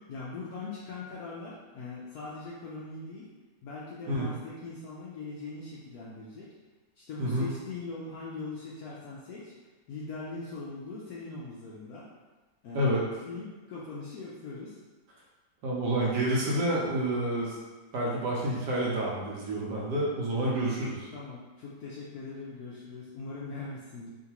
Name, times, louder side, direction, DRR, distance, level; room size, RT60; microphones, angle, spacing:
voice 1, 0.1-3.3 3.6-6.5 7.0-12.1 12.6-13.0 13.2-14.8 21.1-24.1, left 3 dB, 70° left, -6 dB, 0.9 m, -41 dB
voice 2, 15.6-17.5 17.9-21.1, right 1 dB, 70° right, -4 dB, 1.3 m, -28 dB
3.7 x 2.6 x 2.9 m, 1.3 s
omnidirectional pair, 2.0 m